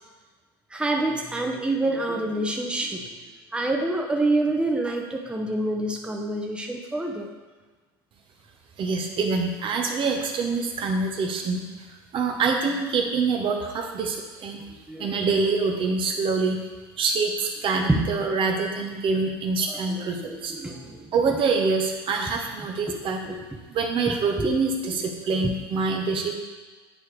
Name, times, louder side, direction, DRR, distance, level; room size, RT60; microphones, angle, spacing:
voice 1, 0.7-3.0 3.5-7.3 9.8-9.9 14.9-15.1 17.9-18.1 19.7-21.1 22.9-23.0 23.2-23.4 24.1-24.5 24.8-25.0 25.4-25.5, right 2 dB, 10° right, 1 dB, 0.9 m, -27 dB
voice 2, 8.8-11.6 12.1-14.6 15.0-16.6 17.0-20.5 21.1-23.2 23.7-26.3, right 4 dB, 45° right, 2 dB, 1.0 m, -25 dB
8.9 x 4.6 x 3.3 m, 1.3 s
hypercardioid pair, 85°, 12 cm